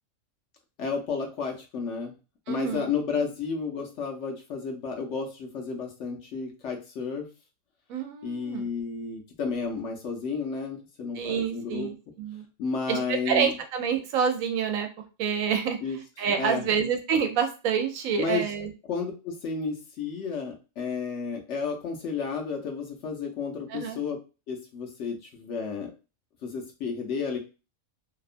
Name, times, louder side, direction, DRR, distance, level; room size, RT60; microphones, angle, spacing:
voice 1, 0.8-2.1 2.5-7.3 8.2-11.9 12.6-13.5 15.8-16.0 16.4-16.6 18.2-18.4 18.9-24.2 24.5-25.9 26.4-27.4, left 5 dB, 65° left, 1 dB, 0.9 m, -32 dB
voice 2, 2.5-2.9 7.9-8.7 11.2-12.4 12.9-14.9 15.2-15.8 16.2-18.7 23.7-24.0, right 7 dB, 80° right, 6 dB, 1.0 m, -27 dB
2.8 x 2.2 x 2.4 m, 0.31 s
omnidirectional pair, 1.4 m